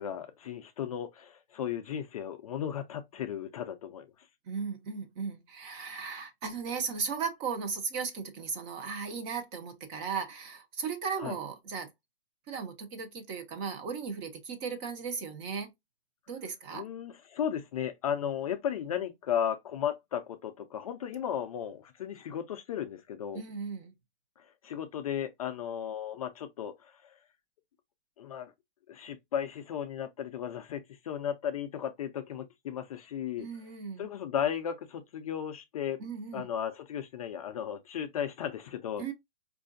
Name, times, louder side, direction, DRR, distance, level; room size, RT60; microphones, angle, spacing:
voice 1, 0.0-4.1 11.2-11.4 16.7-23.4 24.4-27.2 28.2-28.5 28.9-33.5 34.0-36.0 36.3-39.0, left 9 dB, 35° left, 0.4 m, -35 dB
voice 2, 4.5-11.9 12.5-15.7 16.3-16.8 23.3-23.9 33.4-34.1 36.0-36.5 39.0-39.1, right 5 dB, 30° right, 0.7 m, -36 dB
4.6 x 2.5 x 2.5 m
hypercardioid pair, 150°, 31 cm